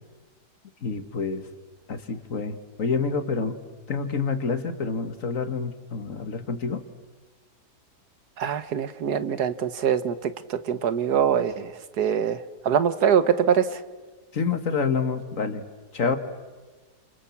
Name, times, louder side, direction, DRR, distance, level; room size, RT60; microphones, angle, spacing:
voice 1, 0.8-1.5 1.9-3.6 3.9-6.8 14.3-15.6 15.9-16.2, left 5 dB, 50° left, 10 dB, 2.0 m, -27 dB
voice 2, 8.4-13.8, right 8 dB, 75° right, 13 dB, 1.6 m, -24 dB
29.0 x 27.5 x 7.2 m, 1.3 s
omnidirectional pair, 1.8 m